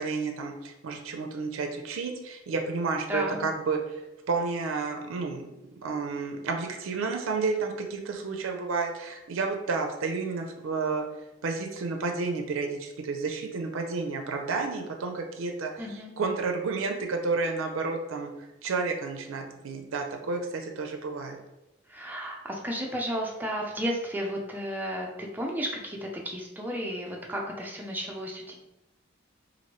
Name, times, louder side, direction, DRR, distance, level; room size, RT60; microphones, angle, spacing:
voice 1, 0.0-3.8 4.3-5.5 5.8-11.0 11.4-21.4, right 4 dB, 80° right, 3 dB, 0.4 m, -31 dB
voice 2, 3.1-3.5 15.8-16.1 21.9-28.6, equal, 10° right, -1 dB, 0.4 m, -33 dB
3.0 x 2.5 x 2.9 m, 0.94 s
head